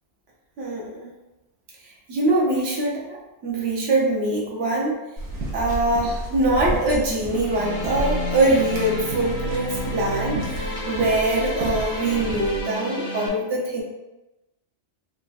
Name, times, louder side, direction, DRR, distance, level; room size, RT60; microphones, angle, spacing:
voice 1, 0.6-1.1 2.1-3.2 3.4-5.0 5.5-10.4 10.9-13.8, right 2 dB, 55° right, -4 dB, 1.0 m, -23 dB
sound 1, 5.2-12.6, right 1 dB, 80° right, 1.1 m, -31 dB
sound 2, 7.4-13.3, left 1 dB, 45° left, 0.5 m, -31 dB
3.5 x 2.1 x 2.4 m, 1.0 s
omnidirectional pair, 1.3 m